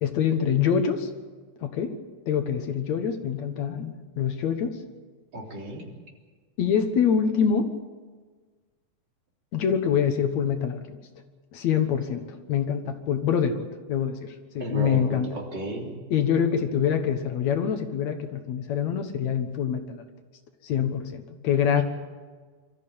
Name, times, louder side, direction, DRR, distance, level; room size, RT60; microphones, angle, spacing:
voice 1, 0.0-1.1 1.6-2.0 2.3-4.8 6.6-7.7 9.5-11.0 11.5-15.3 16.1-20.0 20.6-21.8, left 7 dB, 60° left, 7 dB, 2.4 m, -25 dB
voice 2, 5.3-5.9 14.6-15.9 21.8-21.9, right 2 dB, 30° right, -1 dB, 3.9 m, -34 dB
24.0 x 14.0 x 8.9 m, 1.4 s
omnidirectional pair, 3.8 m